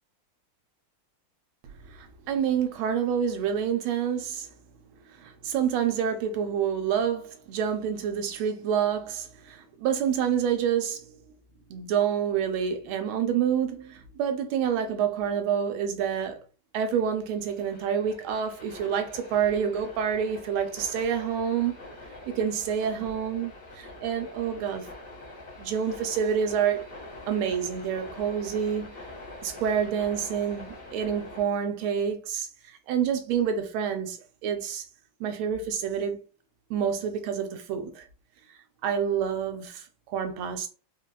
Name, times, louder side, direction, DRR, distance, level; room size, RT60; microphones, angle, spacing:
voice 1, 1.6-4.5 5.1-11.2 11.7-16.4 16.7-21.7 22.3-24.9 25.6-26.9 27.3-28.9 29.4-34.8 35.2-36.2 36.7-38.1 38.8-40.7, right 8 dB, 80° right, 1.4 m, -28 dB
sound 1, 17.0-31.4, left 2 dB, 50° left, 1.2 m, -45 dB
3.8 x 2.2 x 2.3 m
omnidirectional pair, 2.3 m